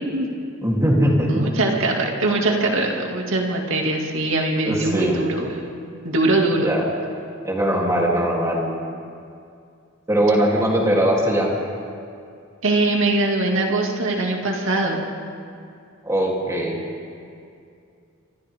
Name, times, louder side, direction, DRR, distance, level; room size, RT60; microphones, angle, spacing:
voice 1, 0.6-1.3 4.6-5.2 6.6-6.9 7.4-8.7 10.1-11.5 16.0-16.7, right 1 dB, 15° right, -3 dB, 3.5 m, -20 dB
voice 2, 1.3-5.7 6.0-6.7 12.6-15.1, right 2 dB, 65° right, 0 dB, 2.6 m, -22 dB
28.0 x 25.5 x 3.8 m, 2.4 s
head